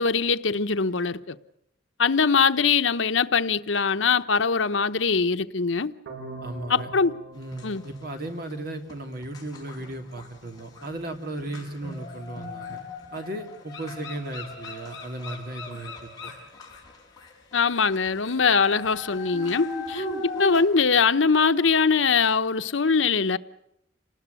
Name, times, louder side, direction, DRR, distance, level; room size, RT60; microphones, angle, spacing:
voice 1, 0.0-1.4 2.0-5.9 6.7-7.1 7.6-7.8 17.5-20.0 20.4-23.4, left 5 dB, 90° left, 0.9 m, -22 dB
sound 1, 6.1-9.0, right 2 dB, 85° right, 5.8 m, -43 dB
voice 2, 6.4-6.9 7.3-12.8 13.1-16.3, right 1 dB, 50° right, 3.0 m, -36 dB
sound 2, 7.5-8.5 8.9-20.6, left 2 dB, 20° left, 6.2 m, -39 dB
27.5 x 20.0 x 8.3 m
head